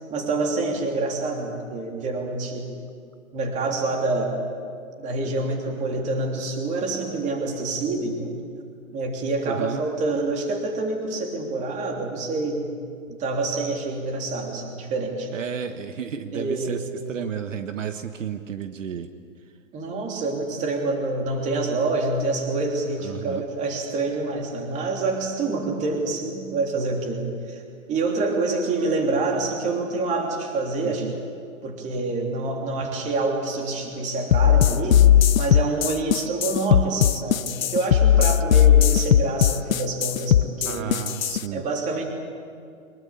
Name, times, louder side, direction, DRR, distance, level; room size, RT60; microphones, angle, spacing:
voice 1, 0.1-2.7 3.3-4.3 5.0-8.3 8.9-12.7 13.1-15.3 16.3-16.9 19.7-27.6 27.9-31.2 31.6-35.1 35.4-40.9 41.5-42.0, right 3 dB, 15° right, 2 dB, 3.3 m, -27 dB
voice 2, 9.5-9.8 15.3-19.1 23.0-23.4 30.8-31.1 40.6-41.6, right 8 dB, 65° right, 8 dB, 1.4 m, -32 dB
sound 1, 34.3-41.4, left 10 dB, 75° left, 0.9 m, -18 dB
24.0 x 21.5 x 8.5 m, 2.3 s
hypercardioid pair, 150°, 41 cm